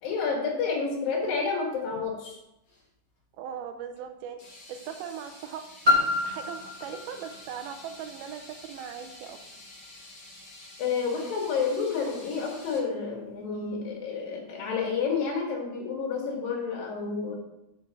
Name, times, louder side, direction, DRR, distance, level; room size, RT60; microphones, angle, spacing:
voice 1, 0.0-2.4 10.8-17.4, left 5 dB, 70° left, 0 dB, 3.5 m, -30 dB
sound 1, 1.8-2.1 2.7-2.9 3.9-4.0 4.4-12.8, left 2 dB, 45° left, 1.2 m, -49 dB
voice 2, 3.4-4.4 4.7-5.6 6.2-9.4, right 8 dB, 85° right, 7 dB, 2.5 m, -39 dB
Piano, 5.8-11.3 12.0-12.1, left 3 dB, 35° right, 0.8 m, -30 dB
6.7 x 5.9 x 6.7 m, 0.86 s
omnidirectional pair, 4.4 m